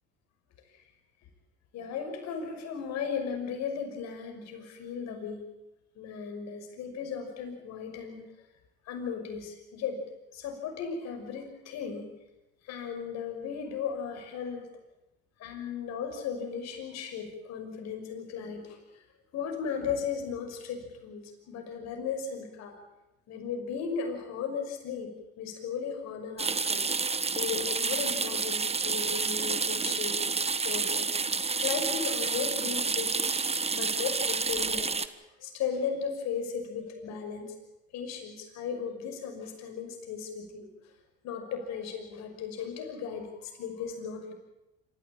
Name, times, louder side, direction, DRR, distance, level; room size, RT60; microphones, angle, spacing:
voice 1, 1.7-5.5 6.0-8.3 8.8-10.0 10.3-12.1 12.6-14.7 15.4-19.0 19.3-22.8 23.3-26.8 27.3-30.2 30.6-37.5 37.9-40.7 41.2-44.3, left 6 dB, 65° left, 4 dB, 6.0 m, -36 dB
sound 1, 26.4-35.1, right 4 dB, 20° right, 1.2 m, -29 dB
26.5 x 15.0 x 8.9 m, 0.95 s
supercardioid pair, 75°, 29 cm